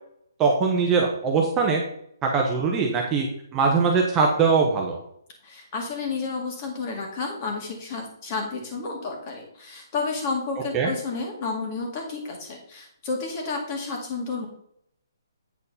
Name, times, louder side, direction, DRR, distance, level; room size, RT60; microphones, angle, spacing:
voice 1, 0.4-1.8 2.2-3.3 3.5-5.0 10.7-10.9, right 5 dB, 15° right, -1 dB, 1.0 m, -21 dB
voice 2, 5.4-14.5, left 4 dB, 30° left, 2 dB, 2.1 m, -31 dB
8.4 x 4.4 x 5.5 m, 0.71 s
hypercardioid pair, 160°, 2 cm